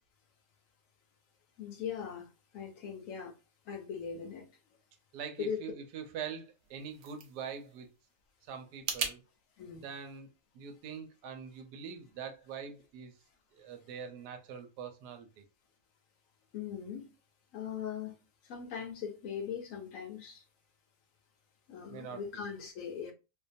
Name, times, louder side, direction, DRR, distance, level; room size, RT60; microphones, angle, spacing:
voice 1, 1.6-2.3 2.5-3.3 3.7-4.5 5.4-5.6 9.6-9.9 16.5-17.1 17.5-18.1 18.4-20.4 21.7-23.1, left 7 dB, 65° left, 0.9 m, -40 dB
voice 2, 5.1-7.9 8.5-9.2 9.8-10.3 10.5-13.1 13.5-15.4 21.9-22.2, right 7 dB, 85° right, 1.2 m, -43 dB
sound 1, 6.5-9.2, right 6 dB, 70° right, 0.6 m, -40 dB
2.7 x 2.2 x 2.5 m
omnidirectional pair, 1.7 m